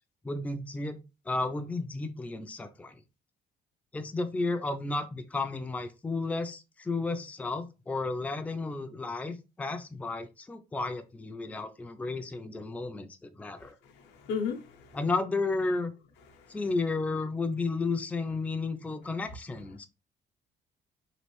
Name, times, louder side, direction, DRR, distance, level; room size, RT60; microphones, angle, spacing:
voice 1, 0.2-1.0 1.3-3.0 3.9-13.1 13.3-13.7 14.9-15.9 16.5-19.9, left 3 dB, 10° left, 0.4 m, -32 dB
voice 2, 13.6-15.0 16.4-16.6, left 6 dB, 85° left, 0.7 m, -36 dB
3.1 x 2.4 x 3.0 m
cardioid pair, 110°, 17 cm